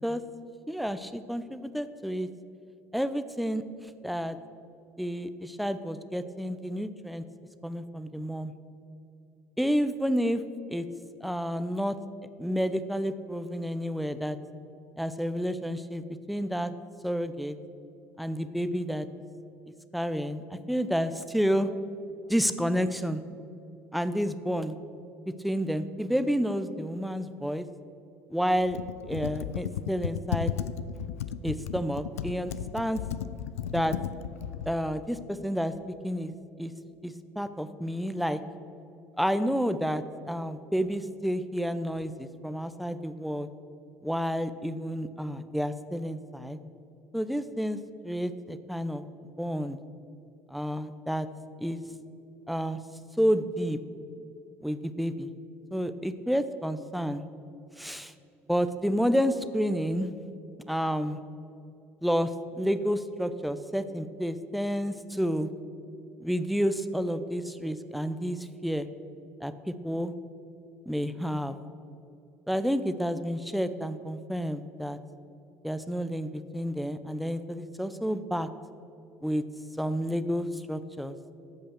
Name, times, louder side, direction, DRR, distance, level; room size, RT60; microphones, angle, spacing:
voice 1, 0.7-2.3 2.9-3.6 4.0-4.4 5.0-7.2 7.6-8.5 9.6-10.4 10.7-10.9 11.2-12.0 12.4-14.4 15.0-16.7 17.0-17.6 18.2-19.1 19.9-21.7 22.3-23.2 23.9-24.7 25.3-27.7 28.3-28.8 29.1-30.5 31.4-33.0 33.7-34.0 34.7-35.7 36.0-36.3 36.6-36.7 37.0-38.4 39.2-43.5 44.0-46.6 47.1-47.8 48.0-49.0 49.4-49.8 50.5-51.3 51.6-51.8 52.5-52.8 53.2-53.8 54.6-55.3 55.7-57.2 57.8-58.1 58.5-60.1 60.7-61.2 62.0-65.5 66.2-68.9 69.4-70.1 70.9-71.6 72.5-75.0 75.6-78.5 79.2-79.4 79.8-81.2, equal, ahead, 11 dB, 0.7 m, -30 dB
Computer keyboard, 28.6-34.8, left 10 dB, 80° left, 0.3 m, -34 dB
13.5 x 5.6 x 6.6 m, 2.7 s
hypercardioid pair, 60°, 8 cm